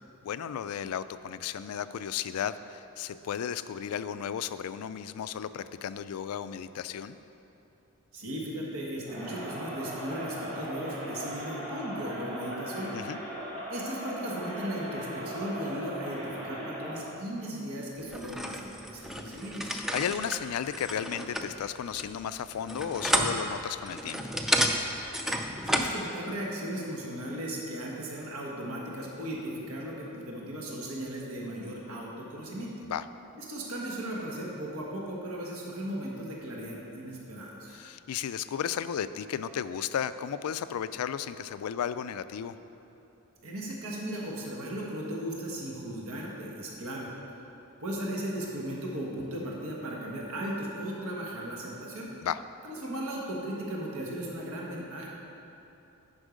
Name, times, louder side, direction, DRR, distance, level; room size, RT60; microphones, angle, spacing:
voice 1, 0.2-7.2 12.9-13.2 19.7-24.4 32.8-33.1 37.7-42.5 52.2-52.4, left 8 dB, 85° left, 13 dB, 0.3 m, -34 dB
voice 2, 8.1-12.9 13.7-19.7 25.6-32.7 33.4-37.8 43.4-47.1 47.8-52.1 52.6-55.1, right 1 dB, 75° right, -3 dB, 1.3 m, -36 dB
Crowd, 9.0-17.2, equal, 35° right, 2.1 m, -38 dB
sound 1, 18.1-26.0, equal, ahead, 0.3 m, -31 dB
9.9 x 5.5 x 5.1 m, 2.9 s
head